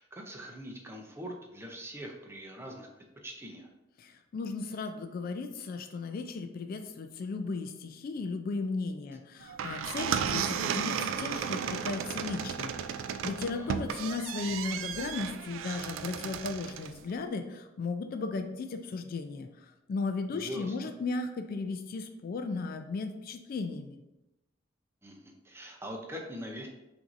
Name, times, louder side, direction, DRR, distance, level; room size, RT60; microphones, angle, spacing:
voice 1, 0.0-3.7 13.4-13.7 20.3-20.8 25.0-26.7, equal, 15° right, 1 dB, 0.5 m, -42 dB
voice 2, 4.0-24.0, left 3 dB, 50° left, 6 dB, 0.3 m, -36 dB
sound 1, 9.4-17.0, right 7 dB, 85° right, 0.3 m, -34 dB
5.9 x 2.6 x 2.5 m, 0.97 s
head